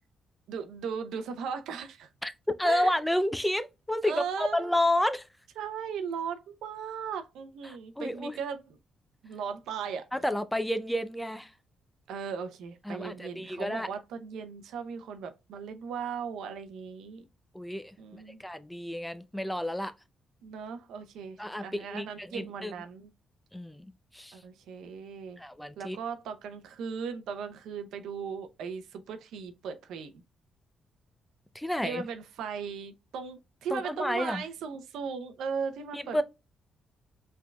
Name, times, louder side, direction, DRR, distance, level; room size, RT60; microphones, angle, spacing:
voice 1, 0.5-2.1 2.6-2.9 4.0-4.8 5.6-8.6 9.2-10.1 12.1-17.2 18.0-18.4 20.4-23.1 24.3-25.4 25.8-30.1 31.8-36.2, right 6 dB, 90° right, 0.6 m, -37 dB
voice 2, 2.6-5.3 7.6-8.4 10.1-11.5 12.8-13.9 17.5-17.9 18.4-19.9 21.4-22.7 23.5-23.9 24.1-24.4 25.4-26.0 31.5-32.0 33.7-34.4 35.9-36.2, left 1 dB, 5° left, 0.5 m, -30 dB
4.7 x 3.6 x 2.3 m
cardioid pair, 100°, 0 cm